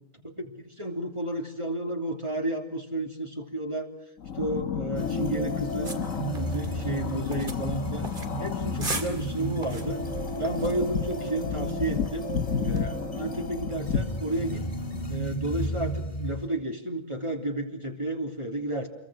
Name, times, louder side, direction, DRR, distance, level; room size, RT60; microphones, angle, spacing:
voice 1, 0.2-3.9 4.3-5.9 6.2-8.1 8.4-10.0 10.4-12.2 12.6-14.7 15.1-18.9, right 1 dB, 20° right, 3 dB, 3.1 m, -32 dB
sound 1, 4.2-15.1, left 6 dB, 90° left, 1.7 m, -33 dB
sound 2, 4.9-16.5, right 1 dB, 25° left, 2.8 m, -34 dB
sound 3, 5.8-12.8, right 2 dB, 40° right, 2.4 m, -41 dB
28.0 x 23.0 x 6.4 m, 0.81 s
omnidirectional pair, 1.4 m